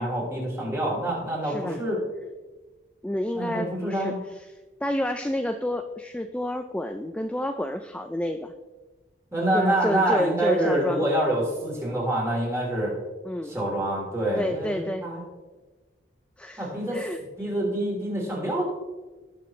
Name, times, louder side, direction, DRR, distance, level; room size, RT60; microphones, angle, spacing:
voice 1, 0.0-2.0 3.4-4.2 9.3-12.9 13.4-15.2 16.6-17.0 17.4-18.6, right 1 dB, 15° right, -3 dB, 3.4 m, -26 dB
voice 2, 1.4-1.8 3.0-4.5 4.8-8.5 9.5-11.1 13.2-13.6 14.4-15.1 16.4-17.2, left 1 dB, 5° left, 7 dB, 0.3 m, -30 dB
18.5 x 6.8 x 3.2 m, 1.3 s
head